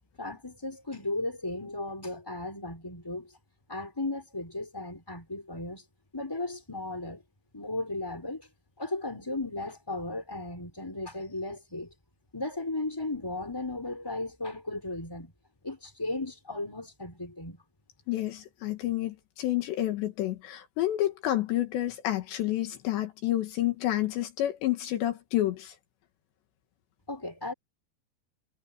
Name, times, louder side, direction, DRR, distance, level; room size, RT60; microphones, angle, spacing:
voice 1, 0.2-3.3 3.7-5.8 6.1-7.2 7.5-8.4 8.8-11.9 12.3-15.3 15.6-17.6 27.1-27.5, left 2 dB, 5° left, 5.5 m, -35 dB
voice 2, 18.1-25.7, left 14 dB, 75° left, 3.6 m, -29 dB
omnidirectional pair, 5.2 m